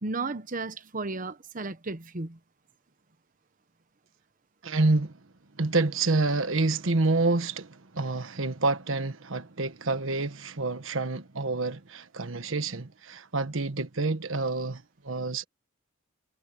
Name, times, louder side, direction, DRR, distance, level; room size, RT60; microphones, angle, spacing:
voice 1, 0.0-2.4, right 3 dB, 40° right, 1.1 m, -34 dB
voice 2, 4.6-5.2 5.6-15.4, right 3 dB, 75° right, 1.4 m, -28 dB
head